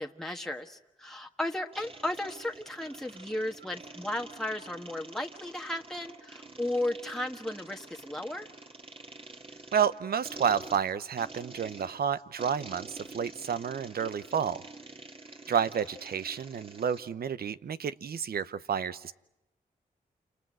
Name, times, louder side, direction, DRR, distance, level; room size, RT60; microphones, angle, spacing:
voice 1, 0.0-8.5, left 1 dB, ahead, 2 dB, 1.5 m, -35 dB
sound 1, 1.7-17.1, right 3 dB, 35° right, 2.7 m, -48 dB
voice 2, 9.7-14.6 15.5-19.1, right 8 dB, 75° right, 14 dB, 0.9 m, -30 dB
29.0 x 28.0 x 6.3 m, 0.91 s
cardioid pair, 60°, 16 cm